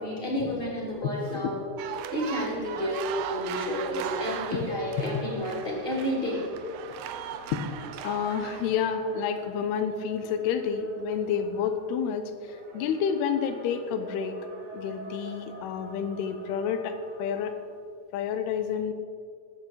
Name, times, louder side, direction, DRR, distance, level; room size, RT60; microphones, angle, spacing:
voice 1, 0.0-1.6 2.1-6.4, equal, 15° left, -4 dB, 2.7 m, -30 dB
voice 2, 1.0-1.5 4.5-4.6 7.5-7.6 8.0-14.4 14.7-17.5 18.1-18.9, left 7 dB, 80° left, 8 dB, 2.9 m, -29 dB
Marrakech Call to lunchtime prayer, 1.2-17.8, right 2 dB, 70° right, 1.0 m, -46 dB
sound 1, 1.8-8.9, right 10 dB, 85° right, 2.1 m, -38 dB
19.5 x 8.9 x 4.6 m, 2.2 s
omnidirectional pair, 4.8 m